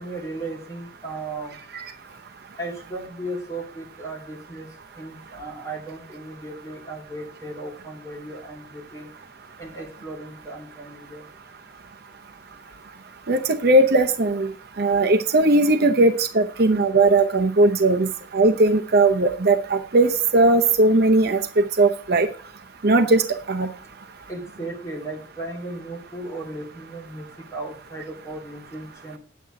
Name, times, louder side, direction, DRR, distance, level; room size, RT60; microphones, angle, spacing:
voice 1, 0.0-1.6 2.6-4.7 5.0-9.1 9.6-11.3 24.3-29.2, right 2 dB, 15° left, -1 dB, 2.5 m, -36 dB
voice 2, 13.3-14.5 14.8-22.3 22.8-23.2 23.5-23.7, right 2 dB, 50° right, 5 dB, 0.7 m, -18 dB
9.2 x 8.2 x 3.7 m, 0.41 s
head